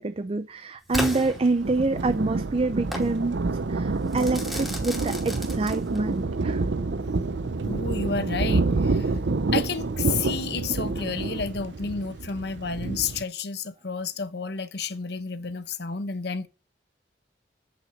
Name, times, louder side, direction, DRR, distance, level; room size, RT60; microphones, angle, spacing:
voice 1, 0.0-3.4 3.7-6.6, right 3 dB, 35° right, 0.5 m, -26 dB
Crackle / Fireworks, 0.9-2.1 2.9-3.2 4.1-6.1, equal, ahead, 2.6 m, -33 dB
Thunder, 0.9-13.2, right 3 dB, 80° right, 0.6 m, -28 dB
voice 2, 7.7-9.1 9.5-16.5, left 5 dB, 65° left, 0.9 m, -31 dB
8.1 x 6.1 x 7.2 m
head